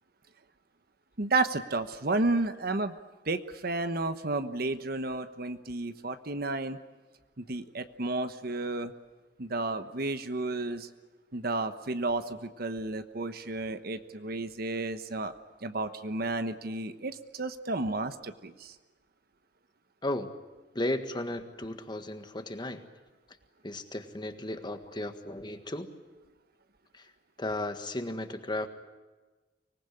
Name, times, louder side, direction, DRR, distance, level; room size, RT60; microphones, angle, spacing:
voice 1, 1.2-2.9 3.2-6.8 7.4-8.9 9.4-10.9 11.3-15.3 15.6-18.8, right 2 dB, 55° right, 10 dB, 1.2 m, -32 dB
voice 2, 20.7-22.8 23.6-25.9 26.9-27.1 27.4-28.7, left 1 dB, 25° left, 8 dB, 1.6 m, -35 dB
25.0 x 19.5 x 9.9 m, 1.2 s
head